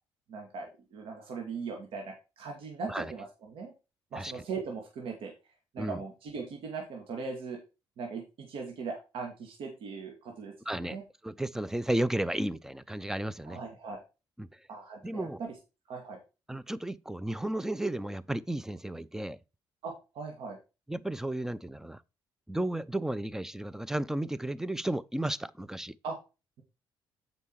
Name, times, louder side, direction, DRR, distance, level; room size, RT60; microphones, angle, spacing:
voice 1, 0.3-3.7 4.1-5.3 5.7-7.6 8.0-10.5 10.8-11.0 13.4-14.0 14.7-15.5 15.9-16.2 19.8-20.6 26.0-26.2, right 4 dB, 75° right, 2.3 m, -39 dB
voice 2, 10.7-11.0 11.2-13.6 14.4-14.5 15.0-15.4 16.5-19.4 20.9-22.0 22.5-25.9, right 1 dB, 5° right, 0.6 m, -33 dB
8.3 x 5.5 x 4.6 m
cardioid pair, 75°, 9 cm